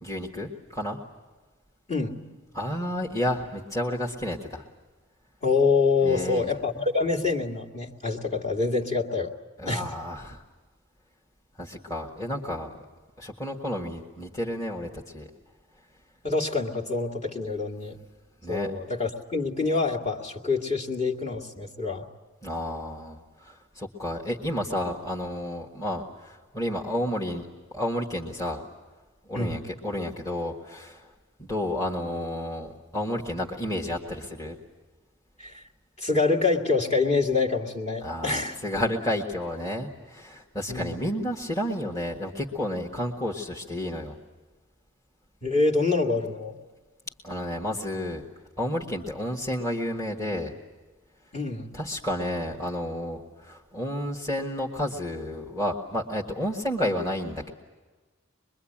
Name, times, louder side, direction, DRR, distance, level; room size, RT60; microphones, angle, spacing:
voice 1, 0.0-1.0 2.5-4.6 6.0-6.5 9.6-10.4 11.6-12.7 13.2-15.3 18.4-18.7 22.4-27.5 27.7-28.6 29.3-31.1 31.4-34.6 38.0-44.2 47.2-48.2 48.6-50.5 51.7-57.5, left 1 dB, 15° left, -2 dB, 1.7 m, -31 dB
voice 2, 5.4-9.3 9.7-9.8 16.2-18.0 18.5-22.1 29.3-29.6 35.4-35.6 36.0-38.6 40.7-41.0 45.4-46.6 51.3-51.7, left 4 dB, 35° left, -2 dB, 2.2 m, -26 dB
25.0 x 22.5 x 8.8 m, 1.3 s
head